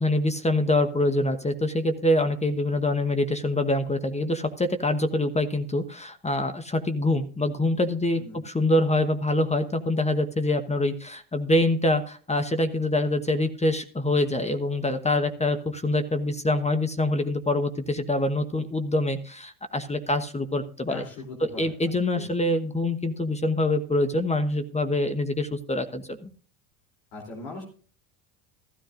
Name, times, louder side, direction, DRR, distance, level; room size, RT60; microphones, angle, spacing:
voice 1, 0.0-21.0 21.4-26.3, left 1 dB, 15° left, 8 dB, 1.1 m, -25 dB
voice 2, 20.9-21.7 22.1-22.3 27.1-27.6, left 3 dB, 75° left, -2 dB, 3.3 m, -39 dB
15.5 x 13.0 x 2.5 m, 0.42 s
hypercardioid pair, 75°, 44 cm